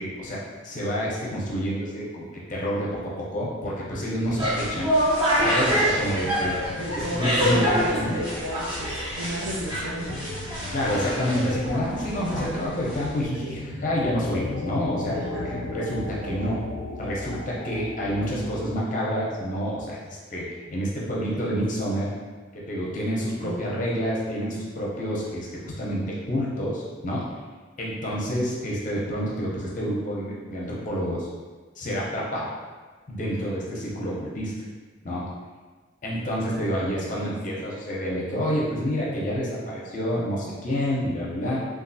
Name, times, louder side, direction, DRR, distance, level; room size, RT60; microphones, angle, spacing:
voice 1, 0.0-2.9 3.3-4.9 5.3-6.5 6.9-8.1 10.7-16.6 17.0-22.1 22.5-27.3 27.8-31.3 31.8-32.5 33.1-34.5 35.0-35.2 36.0-41.6, equal, 40° left, -5 dB, 0.6 m, -28 dB
sound 1, 4.2-13.3, equal, 25° right, 0.6 m, -26 dB
sound 2, 4.8-19.0, left 2 dB, 85° left, 0.3 m, -37 dB
voice 2, 6.8-10.4 13.4-13.6 15.1-15.5 21.3-21.4 23.4-23.7 36.5-37.3 37.5-37.7, right 1 dB, 75° right, -2 dB, 0.4 m, -34 dB
3.1 x 2.4 x 2.6 m, 1.4 s
head